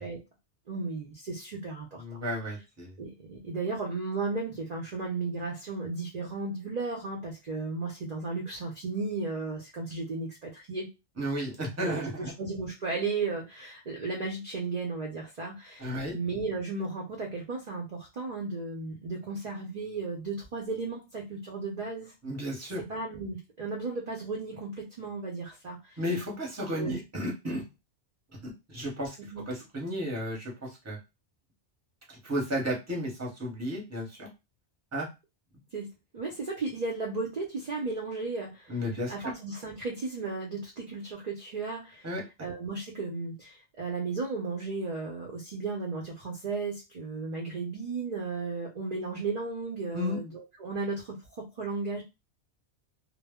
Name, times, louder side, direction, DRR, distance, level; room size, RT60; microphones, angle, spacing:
voice 1, 0.7-2.0 3.0-10.9 11.8-22.1 22.9-26.0 26.8-27.0 29.3-29.4 35.7-35.9 36.1-38.7 39.1-42.1 42.4-52.0, right 3 dB, 50° right, -2 dB, 0.6 m, -35 dB
voice 2, 2.0-2.9 11.2-12.3 15.8-16.1 22.2-22.8 26.0-27.6 28.4-29.2 29.5-31.0 32.2-34.3 34.9-35.1 38.7-39.3 42.0-42.2 49.9-50.2, equal, 15° right, -2 dB, 0.8 m, -33 dB
2.0 x 2.0 x 3.5 m, 0.25 s
omnidirectional pair, 1.2 m